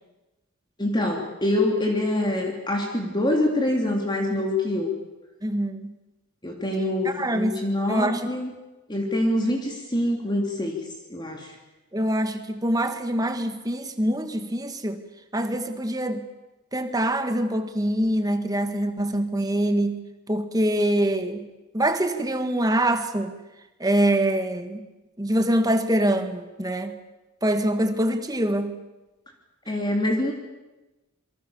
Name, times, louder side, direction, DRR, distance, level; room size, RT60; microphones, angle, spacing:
voice 1, 0.8-4.9 6.4-8.5 8.9-10.8 11.1-11.5 29.7-30.3, left 1 dB, 20° left, 1 dB, 3.3 m, -25 dB
voice 2, 5.4-5.9 7.0-7.6 7.9-8.3 11.9-15.0 15.3-16.2 16.7-20.0 20.3-21.5 21.7-23.3 23.8-24.9 25.2-27.0 27.4-28.8, right 1 dB, 15° right, 8 dB, 1.8 m, -24 dB
28.0 x 23.5 x 7.2 m, 1.1 s
head